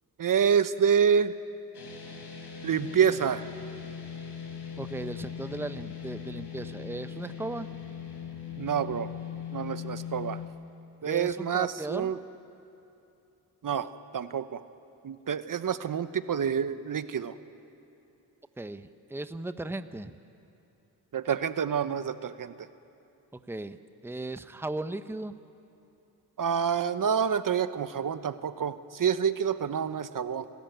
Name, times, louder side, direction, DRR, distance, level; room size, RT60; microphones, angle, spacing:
voice 1, 0.2-1.3 2.6-3.5 8.6-9.1 9.5-10.4 11.0-12.2 13.6-14.6 15.0-17.3 21.1-22.7 26.4-30.5, right 7 dB, 50° right, 12 dB, 1.0 m, -27 dB
sound 1, 1.7-10.5, left 8 dB, 70° left, 4.3 m, -40 dB
voice 2, 4.8-7.7 11.0-12.1 18.6-20.2 23.3-25.3, right 2 dB, 5° right, 11 dB, 0.9 m, -37 dB
29.0 x 13.5 x 9.2 m, 2.8 s
supercardioid pair, 55°, 41 cm